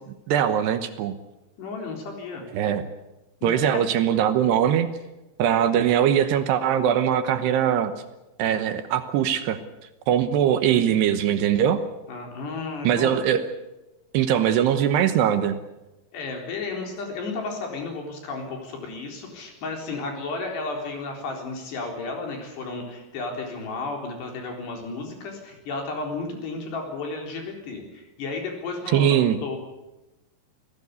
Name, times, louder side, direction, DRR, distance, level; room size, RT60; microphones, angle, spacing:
voice 1, 0.3-1.2 2.5-2.9 3.4-4.9 5.4-7.9 8.4-9.6 10.1-11.8 12.8-13.5 14.1-15.6 28.9-29.4, right 9 dB, 70° right, 10 dB, 2.9 m, -21 dB
voice 2, 1.6-2.5 3.4-3.8 12.1-13.2 14.4-14.5 16.1-29.6, left 3 dB, 65° left, 2 dB, 6.0 m, -33 dB
26.5 x 17.0 x 8.3 m, 1.0 s
omnidirectional pair, 5.4 m